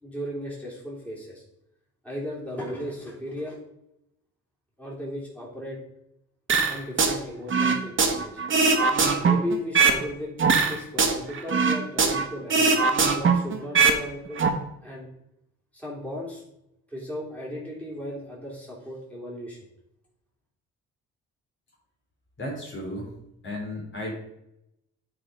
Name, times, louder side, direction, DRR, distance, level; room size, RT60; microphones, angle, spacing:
voice 1, 0.0-1.4 2.0-3.6 4.8-5.8 6.7-8.4 9.2-10.3 10.7-12.7 13.2-14.4 14.8-15.1 15.7-16.4 16.9-19.6, equal, 5° left, -5 dB, 3.6 m, -35 dB
sound 1, 6.5-7.2 7.5-10.0 10.4-12.2 12.5-14.0 14.3-14.5, right 5 dB, 40° right, 1.4 m, -21 dB
voice 2, 22.4-23.1 23.4-24.1, left 1 dB, 40° left, -3 dB, 3.4 m, -34 dB
9.9 x 4.9 x 5.1 m, 0.83 s
cardioid pair, 90°, 30 cm